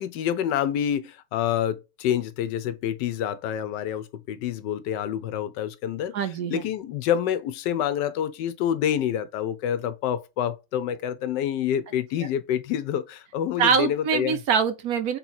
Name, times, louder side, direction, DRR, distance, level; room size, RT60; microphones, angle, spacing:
voice 1, 0.0-6.1 6.5-14.4, left 10 dB, 85° left, 1.2 m, -27 dB
voice 2, 6.1-6.6 13.6-15.2, right 6 dB, 65° right, 1.0 m, -23 dB
3.6 x 3.0 x 3.9 m
omnidirectional pair, 1.9 m